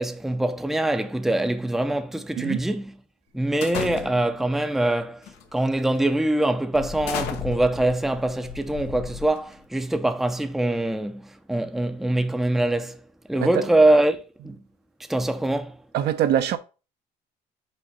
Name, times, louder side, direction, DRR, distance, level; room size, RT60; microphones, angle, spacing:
voice 1, 0.0-2.9 3.3-5.2 5.5-13.0 13.3-14.2 14.4-14.6 15.1-15.8, right 1 dB, ahead, 0.5 m, -23 dB
sound 1, 3.6-4.4 5.2-5.5 5.9-6.1 6.7-9.6, left 7 dB, 85° left, 1.1 m, -34 dB
voice 2, 15.9-16.6, right 10 dB, 75° right, 0.7 m, -23 dB
5.3 x 3.7 x 5.7 m
cardioid pair, 110°, 17 cm